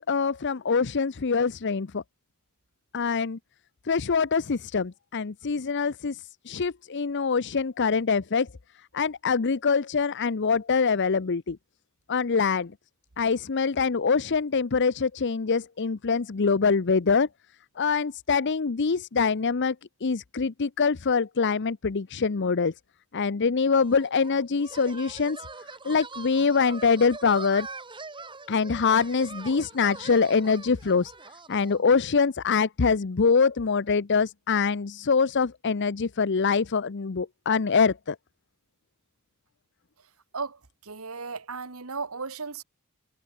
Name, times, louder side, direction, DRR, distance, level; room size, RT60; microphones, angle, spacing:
voice 1, 0.0-2.0 2.9-3.4 3.9-6.2 6.5-8.5 8.9-11.6 12.1-12.7 13.2-17.3 17.8-19.7 20.0-22.7 23.1-25.4 25.8-27.7 28.5-31.1 31.5-38.2, left 5 dB, 55° left, 0.7 m, -24 dB
sound 1, 23.7-31.8, right 3 dB, 20° right, 3.4 m, -42 dB
voice 2, 40.3-42.6, right 4 dB, 75° right, 1.7 m, -35 dB
head